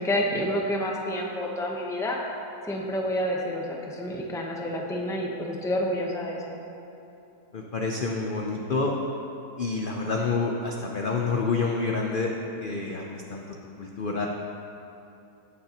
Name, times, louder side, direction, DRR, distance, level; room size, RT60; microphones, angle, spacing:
voice 1, 0.0-2.2 2.6-6.6, equal, 5° left, -1 dB, 0.6 m, -29 dB
voice 2, 7.5-8.9 9.6-12.3 12.6-13.4 13.8-14.3, left 4 dB, 65° left, 0 dB, 0.5 m, -28 dB
18.0 x 6.7 x 2.9 m, 2.9 s
omnidirectional pair, 1.7 m